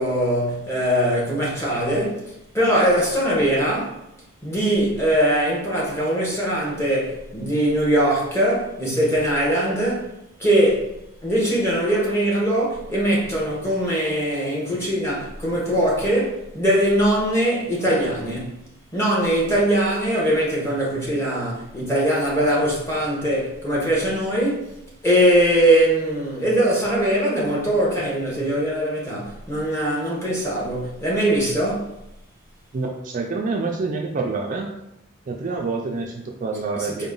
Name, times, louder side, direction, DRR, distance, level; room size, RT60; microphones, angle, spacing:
voice 1, 0.0-4.0 4.4-10.1 10.4-10.9 11.2-18.6 18.9-24.7 25.0-31.9 36.8-37.1, right 1 dB, 15° left, 1.0 m, -21 dB
voice 2, 32.7-34.7 35.3-37.1, right 3 dB, 40° right, 0.3 m, -27 dB
3.9 x 2.1 x 3.8 m
head